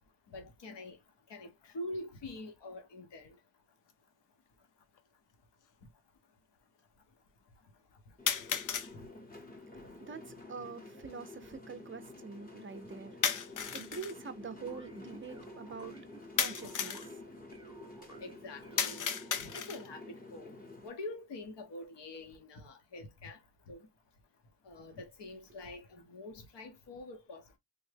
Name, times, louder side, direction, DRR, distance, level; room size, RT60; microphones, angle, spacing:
voice 1, 0.3-1.0 1.3-3.4 8.9-9.1 18.2-19.1 19.4-20.0 20.3-20.5 20.8-23.4 23.7-23.9 24.6-27.6, left 2 dB, 75° left, 0.9 m, -45 dB
sound 1, 3.9-4.0 5.0-5.1 8.3-8.9 13.2-14.2 16.4-17.1 18.8-19.9, left 7 dB, 50° left, 0.4 m, -34 dB
sound 2, 8.2-20.9, left 2 dB, 20° left, 0.8 m, -50 dB
voice 2, 9.5-17.4, right 5 dB, 30° right, 0.4 m, -46 dB
sound 3, 14.7-19.5, right 4 dB, 10° right, 0.8 m, -54 dB
3.4 x 2.1 x 3.2 m
wide cardioid pair, 165°, 43 cm